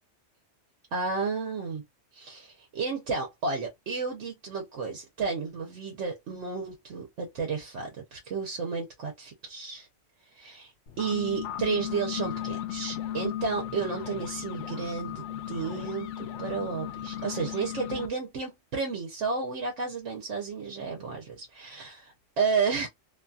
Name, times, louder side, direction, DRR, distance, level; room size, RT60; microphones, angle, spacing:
voice 1, 0.9-1.8 2.1-9.9 10.3-10.7 11.0-22.0 22.4-22.9, right 5 dB, 90° right, 1.1 m, -32 dB
sound 1, 10.9-18.1, left 11 dB, 80° left, 0.9 m, -36 dB
2.7 x 2.3 x 2.6 m
omnidirectional pair, 1.2 m